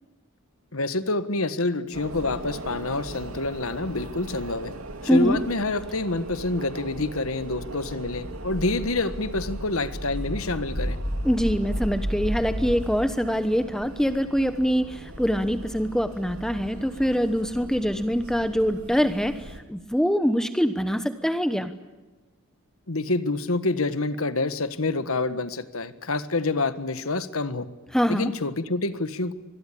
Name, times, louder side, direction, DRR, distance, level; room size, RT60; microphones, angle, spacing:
voice 1, 0.7-4.7 5.1-11.0 22.9-27.7 28.1-29.3, left 2 dB, 75° left, 12 dB, 1.6 m, -27 dB
sound 1, 1.9-19.6, right 1 dB, 80° right, 2.7 m, -40 dB
voice 2, 5.0-5.4 11.2-21.7 27.9-28.3, equal, 5° left, 9 dB, 1.1 m, -24 dB
sound 2, 7.9-12.7, equal, 25° right, 4.2 m, -32 dB
25.0 x 21.5 x 8.5 m, 1.2 s
head